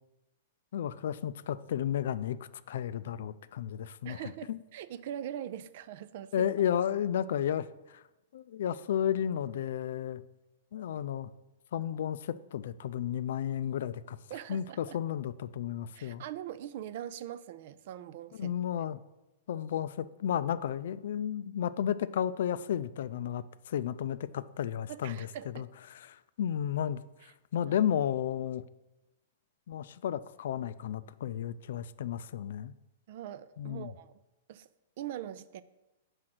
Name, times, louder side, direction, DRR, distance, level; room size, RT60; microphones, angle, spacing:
voice 1, 0.7-2.4 2.7-4.6 6.3-8.0 8.3-10.2 10.7-11.3 11.7-14.2 14.5-16.2 18.4-19.0 19.5-25.3 25.5-27.0 27.5-28.6 29.7-32.7 33.6-33.9, left 9 dB, 70° left, 0.4 m, -33 dB
voice 2, 4.0-6.5 14.3-15.0 15.9-18.5 24.9-25.7 27.7-27.8 33.1-34.1 34.5-34.7 35.0-35.6, right 11 dB, 55° right, 0.4 m, -42 dB
6.3 x 4.8 x 5.9 m
hypercardioid pair, 135°, 0 cm